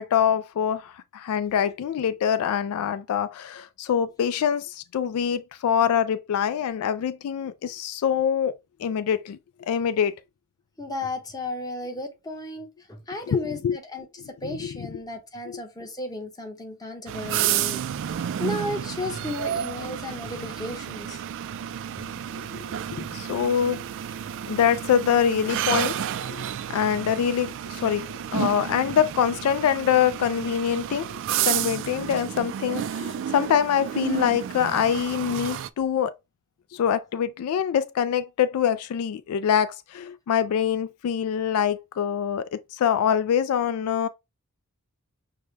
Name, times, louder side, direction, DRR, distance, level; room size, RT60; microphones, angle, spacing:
voice 1, 0.0-9.4 9.7-10.1 13.3-13.8 14.4-14.7 15.5-15.6 22.5-22.6 22.9-23.8 24.5-26.4 26.7-31.1 31.4-36.1 36.7-44.1, left 8 dB, 75° left, 0.3 m, -25 dB
voice 2, 10.8-17.8 18.4-21.2 22.0-22.2 23.0-23.2, left 1 dB, 15° left, 0.9 m, -34 dB
sound 1, 17.1-35.7, right 9 dB, 55° right, 0.3 m, -31 dB
6.3 x 2.2 x 3.3 m
head